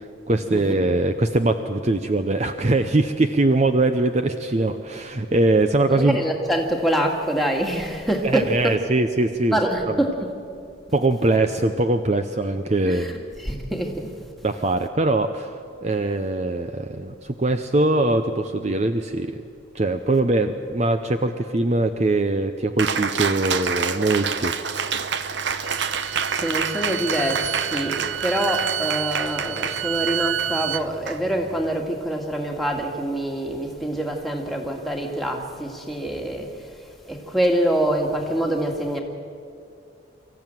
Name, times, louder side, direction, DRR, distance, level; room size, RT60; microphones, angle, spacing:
voice 1, 0.0-6.2 8.2-9.6 9.9-10.0 10.9-13.2 14.4-19.4 19.7-24.5, right 2 dB, 35° right, 8 dB, 0.6 m, -22 dB
voice 2, 0.5-0.9 5.9-8.7 9.5-10.1 12.9-14.1 25.6-39.0, right 1 dB, ahead, 1 dB, 2.0 m, -25 dB
Cheering, 22.8-31.7, right 6 dB, 65° right, 0.9 m, -28 dB
Bowed string instrument, 25.6-30.8, right 11 dB, 85° right, 0.4 m, -29 dB
25.0 x 14.5 x 9.1 m, 2.4 s
head